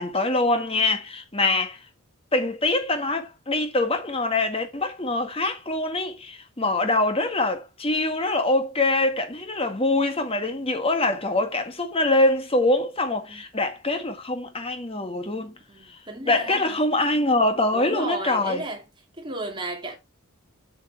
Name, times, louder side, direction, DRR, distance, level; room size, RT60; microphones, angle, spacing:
voice 1, 0.0-1.8 2.3-15.5 15.9-16.0 16.3-18.6, left 2 dB, 25° left, 1.6 m, -24 dB
voice 2, 15.7-16.7 17.7-18.8 19.2-20.0, right 2 dB, 20° right, 2.5 m, -34 dB
7.5 x 6.4 x 4.7 m
head